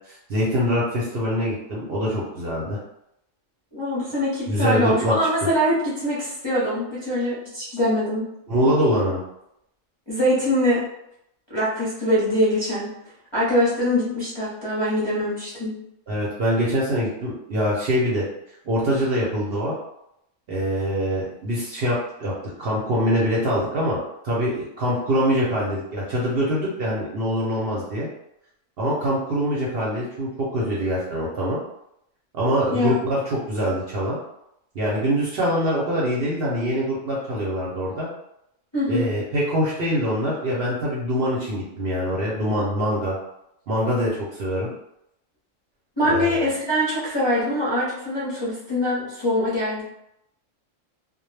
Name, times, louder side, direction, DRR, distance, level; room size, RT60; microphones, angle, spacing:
voice 1, 0.1-2.8 4.5-5.2 8.5-9.2 16.1-18.2 18.6-19.7 20.5-22.3 22.6-24.0 24.2-28.1 28.8-31.6 32.3-34.2 34.7-38.1 38.9-43.2 43.7-44.7 46.1-46.4, equal, 55° right, -6 dB, 0.7 m, -24 dB
voice 2, 3.7-8.2 10.1-10.8 11.5-12.9 13.3-15.7 32.7-33.0 38.7-39.1 46.0-49.8, equal, 25° left, -10 dB, 0.6 m, -23 dB
2.1 x 2.1 x 3.1 m, 0.79 s
omnidirectional pair, 1.4 m